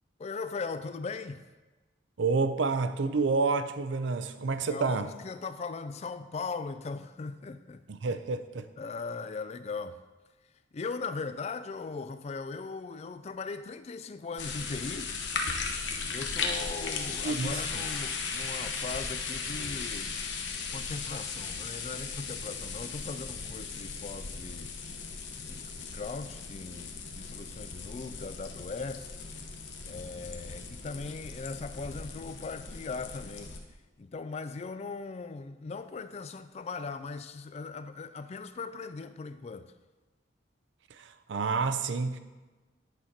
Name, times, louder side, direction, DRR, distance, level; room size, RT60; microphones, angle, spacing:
voice 1, 0.2-1.5 4.6-8.2 8.8-10.0 10.7-15.1 16.1-20.2 20.7-24.7 25.4-29.1 29.9-33.5 34.0-39.7, left 4 dB, 35° left, 0.3 m, -39 dB
voice 2, 2.2-5.1 7.9-8.7 17.2-17.5 41.0-42.2, right 4 dB, 80° right, 0.5 m, -29 dB
sound 1, 14.4-33.6, left 5 dB, 75° left, 0.9 m, -37 dB
9.7 x 4.3 x 5.1 m
head